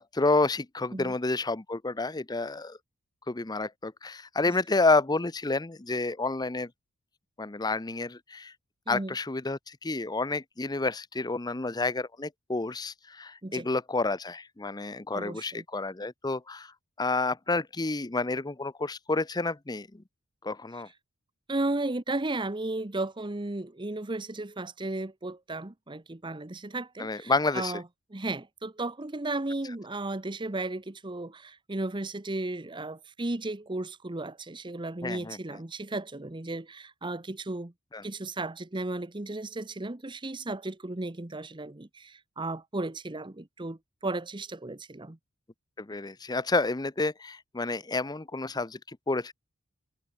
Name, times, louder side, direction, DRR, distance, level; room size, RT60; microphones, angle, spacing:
voice 1, 0.0-2.8 3.3-6.7 7.4-8.5 8.9-16.7 17.0-19.9 20.4-20.9 27.0-27.7 35.0-35.4 37.9-38.0 45.8-49.3, left 3 dB, 20° left, 0.7 m, -29 dB
voice 2, 15.1-15.6 21.5-27.8 28.1-37.7 38.0-45.2, right 2 dB, 20° right, 0.9 m, -34 dB
head